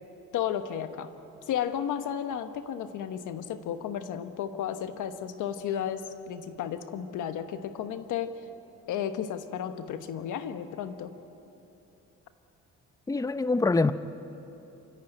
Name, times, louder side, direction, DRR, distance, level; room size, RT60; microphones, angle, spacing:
voice 1, 0.3-1.1 1.5-8.4 8.9-11.1, left 9 dB, 85° left, 9 dB, 1.2 m, -33 dB
voice 2, 13.1-13.9, left 3 dB, 10° left, 12 dB, 0.6 m, -24 dB
27.5 x 14.5 x 9.0 m, 2.9 s
cardioid pair, 90°, 30 cm